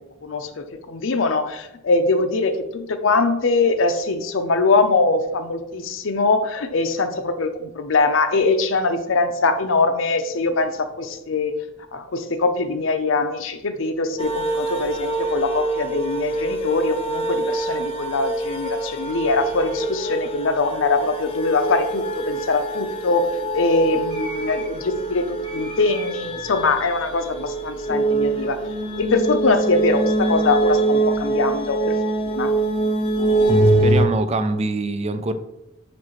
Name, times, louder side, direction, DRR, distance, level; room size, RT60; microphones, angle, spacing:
voice 1, 0.2-11.6 11.9-23.3 23.5-28.6 29.0-31.9 32.2-32.5, left 3 dB, 70° left, 8 dB, 0.6 m, -22 dB
sound 1, 14.2-34.1, right 2 dB, 30° left, 0.6 m, -24 dB
sound 2, 21.6-29.9, equal, 85° right, 1.7 m, -44 dB
voice 2, 33.8-35.3, right 2 dB, 30° right, 10 dB, 0.4 m, -24 dB
9.5 x 3.3 x 3.1 m, 0.86 s
head